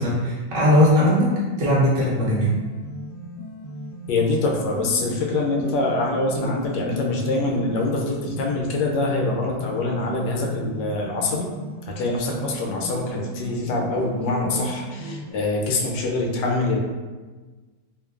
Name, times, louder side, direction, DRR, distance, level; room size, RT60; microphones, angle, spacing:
voice 1, 0.0-2.5, left 1 dB, 45° right, -7 dB, 0.8 m, -19 dB
sound 1, 2.2-15.3, equal, 55° left, 0.7 m, -36 dB
voice 2, 4.1-11.5 11.9-16.8, left 2 dB, 90° left, 0 dB, 1.2 m, -24 dB
3.0 x 2.2 x 2.3 m, 1.3 s
omnidirectional pair, 1.9 m